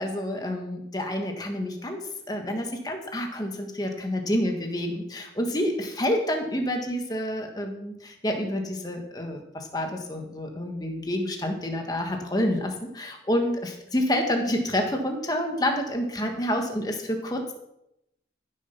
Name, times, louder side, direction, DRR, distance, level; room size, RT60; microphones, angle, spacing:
voice 1, 0.0-17.5, left 1 dB, 20° left, 3 dB, 1.5 m, -28 dB
14.0 x 6.8 x 5.8 m, 0.82 s
head